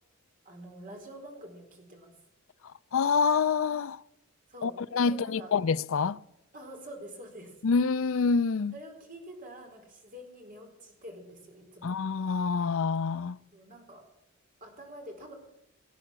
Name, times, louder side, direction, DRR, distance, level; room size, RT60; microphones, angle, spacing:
voice 1, 0.4-2.1 4.5-4.8 5.0-5.5 6.5-7.6 8.7-12.0 13.5-14.0 14.6-15.3, right 1 dB, 40° right, 4.4 m, -46 dB
voice 2, 2.9-4.0 4.6-6.2 7.6-8.7 11.8-13.4, left 5 dB, 60° left, 0.4 m, -27 dB
18.0 x 10.0 x 7.5 m
head